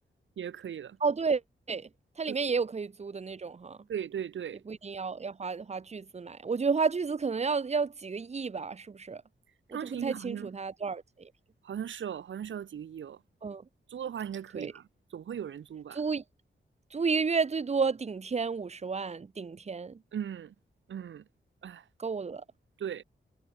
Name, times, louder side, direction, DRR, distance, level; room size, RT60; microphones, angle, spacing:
voice 1, 0.4-1.0 2.3-2.4 3.9-4.6 9.7-10.5 11.6-13.2 13.9-14.8 15.1-16.0 20.1-20.5 20.9-21.2 21.6-21.8 22.8-23.0, right 9 dB, 80° right, 0.9 m, -37 dB
voice 2, 1.0-1.4 1.7-1.9 2.2-3.8 4.7-9.2 9.7-11.3 13.4-13.6 14.5-14.7 15.9-16.2 16.9-20.0 22.0-22.4, right 5 dB, 35° right, 0.9 m, -31 dB
wide cardioid pair, 120°, 19 cm